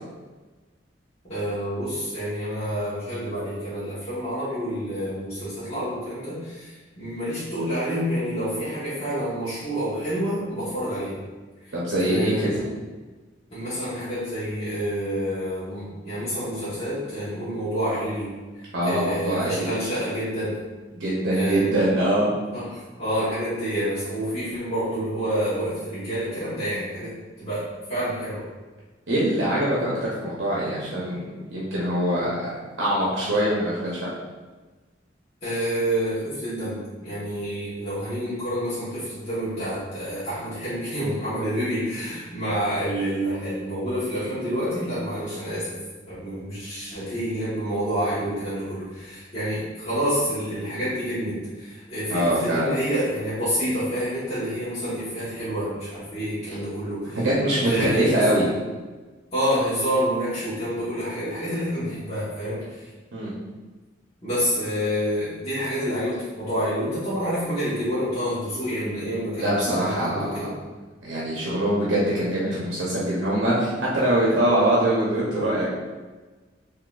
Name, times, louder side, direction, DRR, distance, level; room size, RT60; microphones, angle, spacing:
voice 1, 1.3-11.2 11.6-12.6 13.5-20.6 21.3-21.7 22.5-28.5 35.4-45.8 46.1-57.3 57.6-58.3 59.3-62.9 64.2-70.5, equal, 35° left, -13 dB, 1.1 m, -28 dB
voice 2, 11.7-12.6 18.7-19.7 20.9-22.3 29.1-32.3 32.8-34.1 52.1-52.7 57.2-58.5 63.1-63.3 69.4-70.3 71.0-75.7, right 1 dB, 80° right, -6 dB, 0.7 m, -23 dB
3.8 x 2.7 x 2.4 m, 1.3 s
head